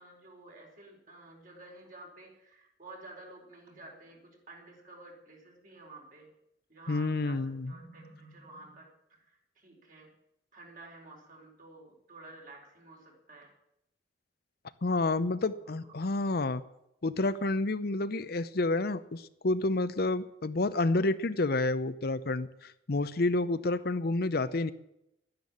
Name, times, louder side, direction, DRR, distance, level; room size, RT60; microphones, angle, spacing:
voice 1, 0.0-6.3 6.7-7.4 7.7-10.1 10.5-13.5 15.6-16.2, right 2 dB, 50° right, 0 dB, 4.3 m, -51 dB
voice 2, 6.9-7.7 14.8-16.6 17.0-24.7, left 2 dB, 60° left, 13 dB, 0.7 m, -29 dB
12.5 x 10.5 x 8.7 m, 0.83 s
head